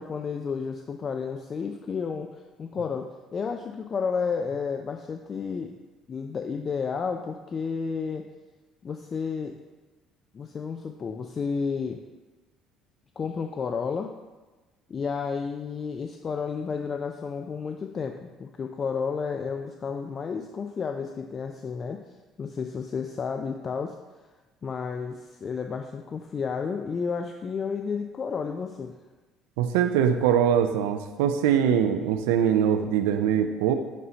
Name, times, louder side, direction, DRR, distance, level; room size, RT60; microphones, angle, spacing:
voice 1, 0.0-5.7 6.1-8.2 8.8-9.5 10.3-12.0 13.2-14.1 14.9-22.0 22.4-23.9 24.6-28.9, left 5 dB, 40° left, 4 dB, 0.4 m, -31 dB
voice 2, 29.6-33.7, right 9 dB, 85° right, 7 dB, 0.4 m, -22 dB
8.2 x 2.7 x 4.3 m, 1.2 s
hypercardioid pair, 70°, 0 cm